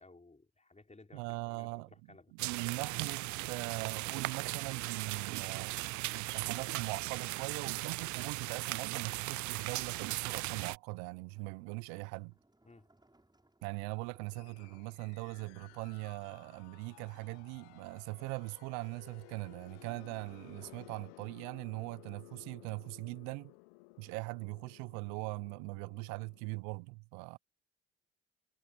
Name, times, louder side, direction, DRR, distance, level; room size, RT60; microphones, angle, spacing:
voice 1, 0.0-2.3 12.6-12.9, left 2 dB, 20° left, 5.7 m, -58 dB
voice 2, 1.1-1.9 2.4-12.3 13.6-23.5 24.0-27.4, right 30 dB, 75° right, 0.9 m, -41 dB
sound 1, 2.4-10.8, right 19 dB, 60° right, 0.5 m, -38 dB
sound 2, 10.7-21.5, right 1 dB, 10° right, 6.8 m, -68 dB
sound 3, 14.3-26.6, left 26 dB, 80° left, 1.1 m, -57 dB
hypercardioid pair, 50°, 34 cm